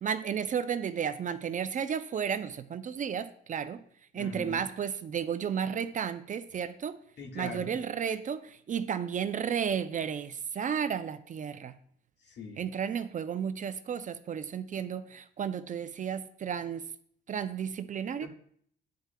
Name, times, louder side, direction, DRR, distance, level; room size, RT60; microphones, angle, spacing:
voice 1, 0.0-3.8 4.1-7.0 7.4-8.4 8.7-11.7 12.6-16.8 17.3-18.3, right 7 dB, 40° right, 0.4 m, -33 dB
voice 2, 4.1-4.7 7.2-7.8 12.2-12.6 18.2-18.3, left 3 dB, 60° left, 1.4 m, -41 dB
10.0 x 4.6 x 2.2 m
cardioid pair, 90°, 20 cm